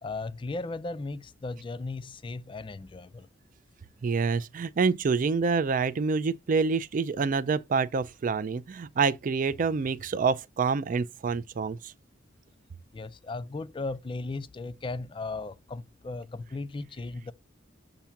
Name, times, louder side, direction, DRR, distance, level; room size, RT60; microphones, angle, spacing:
voice 1, 0.0-3.3 12.9-17.3, left 3 dB, 25° left, 0.4 m, -36 dB
voice 2, 4.0-11.9, right 5 dB, 45° right, 0.4 m, -27 dB
7.0 x 2.7 x 5.7 m
head